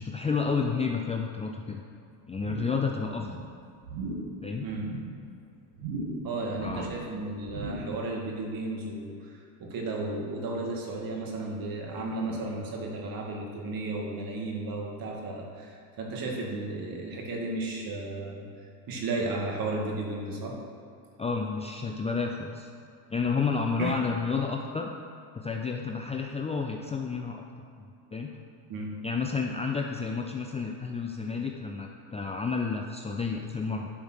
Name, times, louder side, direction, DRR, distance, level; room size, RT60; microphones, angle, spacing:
voice 1, 0.0-1.8 2.3-3.4 4.4-4.6 6.6-6.9 21.2-22.7 23.1-24.9 25.4-27.4 27.8-27.9 28.1-28.3 29.0-33.9, left 5 dB, 15° left, 1 dB, 0.5 m, -30 dB
sound 1, 2.4-2.9 3.1-3.5 3.8-4.3 4.7-5.1 5.7-6.3 6.5-7.1 7.4-8.0 8.3-8.4, right 2 dB, 75° right, 2.5 m, -37 dB
voice 2, 6.2-18.4 18.9-20.6 23.4-23.5 23.8-24.0 28.7-28.9, right 2 dB, 45° right, -1 dB, 2.3 m, -34 dB
10.5 x 5.1 x 6.4 m, 2.5 s
supercardioid pair, 100°, 48 cm